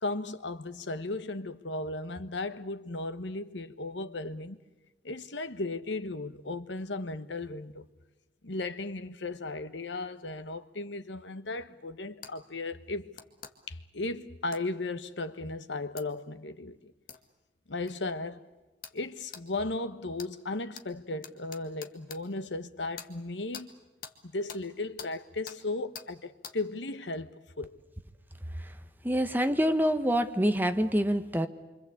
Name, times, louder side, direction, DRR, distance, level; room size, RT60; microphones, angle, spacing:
voice 1, 0.0-4.6 5.0-7.8 8.4-13.1 13.7-16.9 17.7-18.4 18.9-23.7 24.2-27.8, left 2 dB, 90° left, 1.3 m, -36 dB
sound 1, 12.2-12.3 13.1-13.5 14.5-14.6 16.0-16.1 17.1-17.2 17.9-18.0 18.8-19.0 19.3-19.4 20.2-20.3 20.7-20.9 21.2-22.2 23.0-23.1 23.5-23.7 24.0-24.2 24.5-24.6 25.0-25.1 25.5-25.6 25.9-26.1 26.4-26.6, left 7 dB, 50° left, 1.9 m, -44 dB
voice 2, 29.0-31.5, equal, 10° right, 1.3 m, -26 dB
27.5 x 25.0 x 8.4 m
head